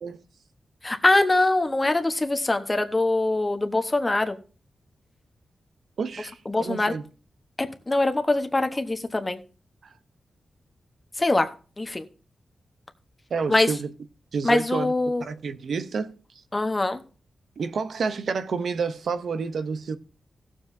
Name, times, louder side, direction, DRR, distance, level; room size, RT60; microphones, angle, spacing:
voice 1, 0.8-4.4 6.5-6.9 7.6-9.4 11.2-11.5 11.8-12.0 13.5-13.7 14.4-15.2 16.5-17.0, left 2 dB, 20° left, 0.9 m, -23 dB
voice 2, 6.0-7.0 13.3-13.9 14.3-14.9 15.2-16.2 17.6-20.0, right 5 dB, 70° right, 0.6 m, -29 dB
18.5 x 7.3 x 2.6 m
wide cardioid pair, 135°, 0 cm